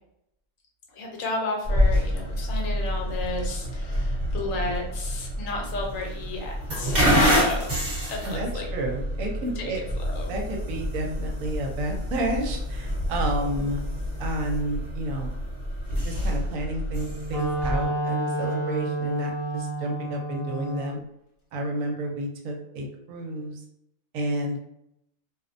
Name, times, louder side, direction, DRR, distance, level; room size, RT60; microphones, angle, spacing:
voice 1, 0.9-8.7 9.6-10.3, left 2 dB, 70° left, 0 dB, 1.0 m, -33 dB
sound 1, 1.6-17.8, equal, 35° right, 0.9 m, -27 dB
voice 2, 8.2-9.8 10.3-13.8 14.2-15.3 16.0-21.0 21.5-23.6 24.1-24.6, right 1 dB, 75° right, 1 dB, 0.9 m, -31 dB
Wind instrument woodwind instrument, 16.8-21.0, right 2 dB, 30° left, 0.6 m, -30 dB
2.4 x 2.0 x 2.5 m, 0.79 s
omnidirectional pair, 1.5 m